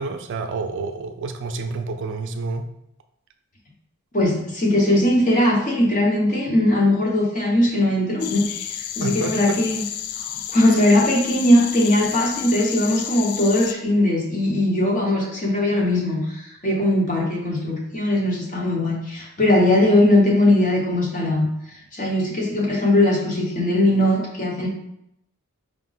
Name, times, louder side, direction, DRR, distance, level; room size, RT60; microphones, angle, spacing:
voice 1, 0.0-2.6 9.0-9.6, right 4 dB, 55° right, 6 dB, 0.4 m, -29 dB
voice 2, 4.1-9.8 10.1-21.5 21.9-24.7, left 1 dB, 35° left, -1 dB, 0.9 m, -20 dB
sound 1, 8.2-13.7, left 10 dB, 80° left, 0.3 m, -31 dB
4.9 x 2.2 x 3.9 m, 0.78 s
head